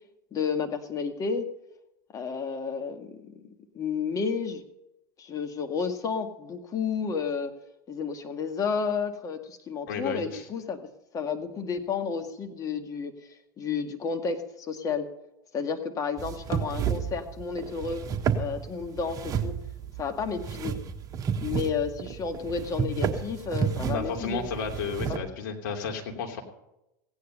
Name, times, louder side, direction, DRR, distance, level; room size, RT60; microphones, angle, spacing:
voice 1, 0.3-1.5 2.1-4.6 5.2-7.5 7.9-10.8 11.1-13.1 13.6-15.1 15.5-18.0 18.4-19.6 20.0-20.7 21.4-24.5 25.0-25.2, left 5 dB, 30° left, 6 dB, 2.0 m, -31 dB
voice 2, 9.9-10.4 23.8-26.4, left 5 dB, 65° left, 3 dB, 2.9 m, -33 dB
sound 1, 16.2-25.2, right 7 dB, 35° right, 1.4 m, -31 dB
16.0 x 9.7 x 5.5 m, 0.87 s
hypercardioid pair, 100°, 11 cm